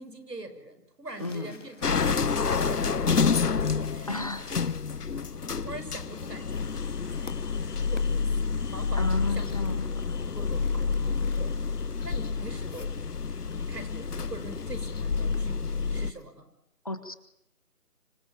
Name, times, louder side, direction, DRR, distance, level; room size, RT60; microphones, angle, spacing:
voice 1, 0.0-3.2 3.5-4.1 5.6-8.3 8.7-9.5 10.3-10.8 11.3-11.5 12.0-12.9 13.7-15.6 15.9-16.4, right 2 dB, 90° right, 8 dB, 6.3 m, -43 dB
sound 1, 1.0-16.3, left 4 dB, 50° left, 2.2 m, -53 dB
voice 2, 1.2-1.5 4.1-4.5 8.9-9.9 16.8-17.1, left 2 dB, 25° left, 9 dB, 1.3 m, -33 dB
sound 2, 1.8-16.1, left 5 dB, 75° left, 1.2 m, -29 dB
26.0 x 23.0 x 8.9 m, 0.81 s
figure-of-eight pair, 175°, 46 cm